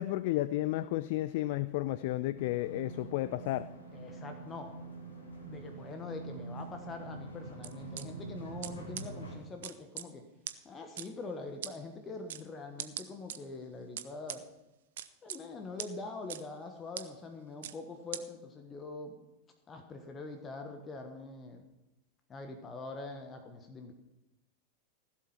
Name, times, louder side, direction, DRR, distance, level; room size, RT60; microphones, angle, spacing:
voice 1, 0.0-3.7, left 16 dB, 50° left, 16 dB, 0.3 m, -32 dB
sound 1, 2.3-9.4, right 2 dB, 70° left, 2.7 m, -45 dB
voice 2, 3.9-4.7 5.4-10.3 10.6-14.5 15.2-19.2 19.7-21.6 22.3-23.9, left 3 dB, 20° left, 6 dB, 1.3 m, -44 dB
sound 2, 7.6-8.0 8.6-8.7 9.0-9.1 9.6-10.1 10.5-10.6 11.0-11.1 11.6-11.7 12.3-12.4 12.8-13.4 14.0-14.4 15.0-15.4 15.8-15.9 16.3-16.4 17.0-17.1 17.6-17.7 18.1-18.2, right 12 dB, 55° right, 0.7 m, -39 dB
16.0 x 7.6 x 5.8 m, 0.94 s
figure-of-eight pair, 90°, 0 cm